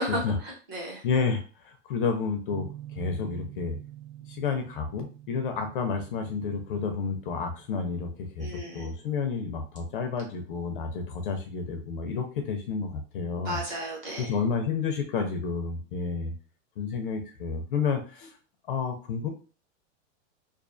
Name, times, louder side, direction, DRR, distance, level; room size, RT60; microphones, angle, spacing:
voice 1, 0.0-1.0 8.4-9.0 13.4-14.4, equal, 25° right, -3 dB, 0.8 m, -34 dB
voice 2, 1.0-2.7 2.9-3.8 4.3-8.5 8.7-13.6 14.2-16.3 16.8-18.4 18.7-19.3, left 5 dB, 50° left, 5 dB, 0.4 m, -30 dB
sound 1, 2.5-11.2, right 13 dB, 65° right, 1.0 m, -48 dB
2.3 x 2.3 x 2.4 m, 0.36 s
supercardioid pair, 175°, 36 cm